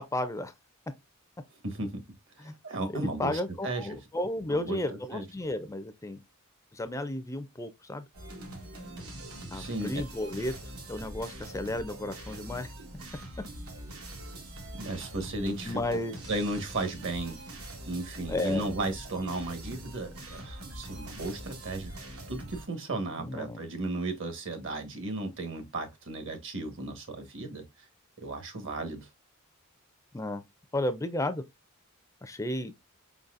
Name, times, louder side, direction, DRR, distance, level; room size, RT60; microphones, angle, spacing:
voice 1, 0.1-0.5 2.4-2.6 2.9-6.2 6.7-8.0 9.5-10.5 10.9-12.7 15.7-16.2 18.3-18.6 23.1-23.6 30.1-30.4 30.7-31.4 32.2-32.7, left 1 dB, 15° left, 0.4 m, -33 dB
voice 2, 1.6-2.0 2.4-3.9 4.5-4.8 5.1-5.2 9.5-10.0 14.7-16.0 16.3-17.4 17.9-22.0 22.3-27.6 28.2-29.1, right 2 dB, 60° right, 1.2 m, -35 dB
sound 1, 8.1-22.6, right 1 dB, 85° right, 1.4 m, -43 dB
4.9 x 4.0 x 2.4 m
head